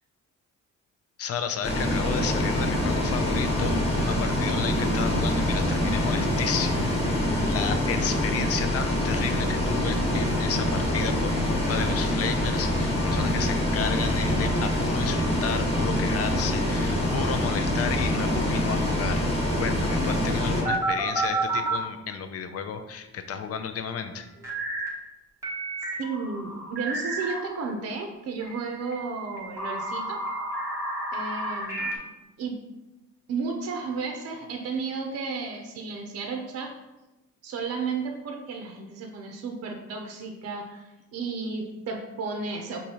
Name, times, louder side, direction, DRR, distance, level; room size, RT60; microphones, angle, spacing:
voice 1, 1.2-24.3, left 7 dB, 50° left, 9 dB, 0.5 m, -33 dB
Bus, 1.6-20.6, left 1 dB, 20° left, 1.2 m, -25 dB
sound 1, 20.6-21.8 24.4-24.9 25.4-27.5 28.4-32.0, right 2 dB, 10° right, 1.2 m, -31 dB
voice 2, 26.0-30.2 31.1-32.1 32.4-32.6 33.3-36.7 37.4-42.8, right 4 dB, 50° right, 3 dB, 0.6 m, -33 dB
4.7 x 2.7 x 2.8 m, 1.0 s
cardioid pair, 90°, 30 cm